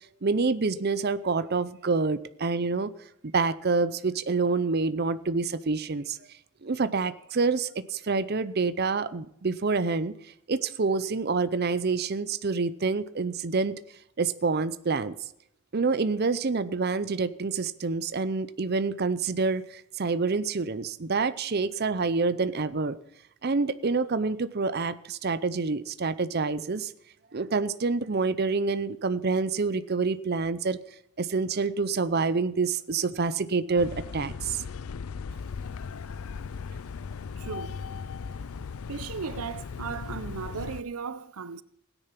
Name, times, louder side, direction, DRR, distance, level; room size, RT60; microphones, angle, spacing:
voice 1, 0.2-2.9 3.3-6.2 6.6-10.1 10.5-13.8 14.2-15.1 15.7-23.0 23.4-26.9 27.3-30.8 31.2-34.6, right 4 dB, 45° right, 0.6 m, -27 dB
sound 1, 33.8-40.8, left 5 dB, 75° left, 0.5 m, -37 dB
voice 2, 37.4-37.8 38.9-41.6, right 5 dB, 85° right, 0.6 m, -36 dB
17.0 x 10.0 x 5.9 m
head